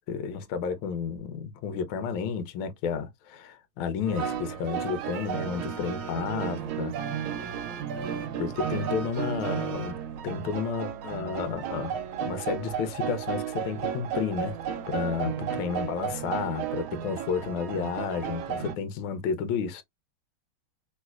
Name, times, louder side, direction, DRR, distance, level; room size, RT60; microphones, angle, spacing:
voice 1, 0.1-6.9 7.4-7.6 8.4-10.0 10.2-11.9 12.2-14.5 14.9-15.3 15.6-19.8, left 6 dB, 80° left, 1.4 m, -31 dB
sound 1, 4.1-18.7, right 8 dB, 80° right, 1.4 m, -33 dB
3.2 x 3.1 x 2.3 m
omnidirectional pair, 2.2 m